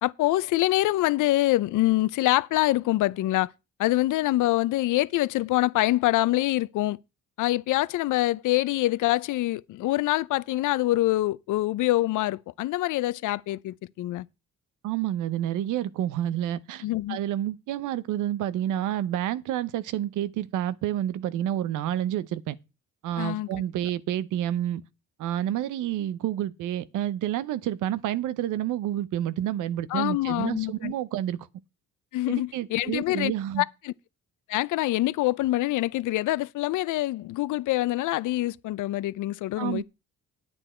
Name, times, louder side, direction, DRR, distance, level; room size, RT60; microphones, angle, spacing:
voice 1, 0.0-3.5 3.8-7.0 7.4-14.3 16.8-17.2 23.2-23.5 29.9-30.9 32.1-33.3 33.6-33.9 34.5-39.8, left 17 dB, 80° left, 0.6 m, -25 dB
voice 2, 14.8-22.6 23.0-24.8 25.2-31.5 32.3-33.6 39.6-39.8, right 12 dB, 90° right, 0.8 m, -29 dB
10.0 x 8.9 x 4.3 m
cardioid pair, 90°, 30 cm